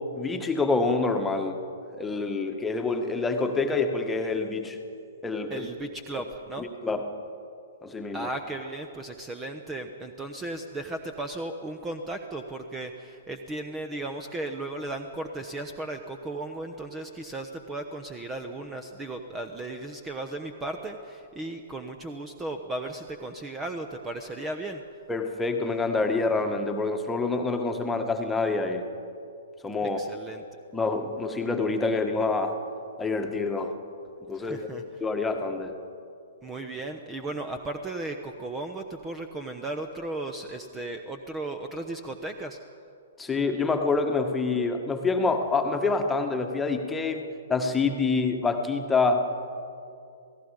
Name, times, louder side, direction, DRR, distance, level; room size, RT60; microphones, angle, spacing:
voice 1, 0.0-1.6 2.0-4.8 5.2-5.7 6.1-6.2 6.6-7.0 7.8-8.3 25.1-28.8 29.6-30.0 30.7-32.6 33.0-33.7 34.3-34.7 35.0-35.8 43.2-47.2 47.5-49.2, left 3 dB, 10° left, 5 dB, 1.6 m, -27 dB
voice 2, 5.5-6.7 8.1-24.8 29.8-30.4 34.3-34.8 36.4-42.6, right 2 dB, 15° right, 7 dB, 1.0 m, -36 dB
28.0 x 18.0 x 5.2 m, 2.5 s
figure-of-eight pair, 120°, 0 cm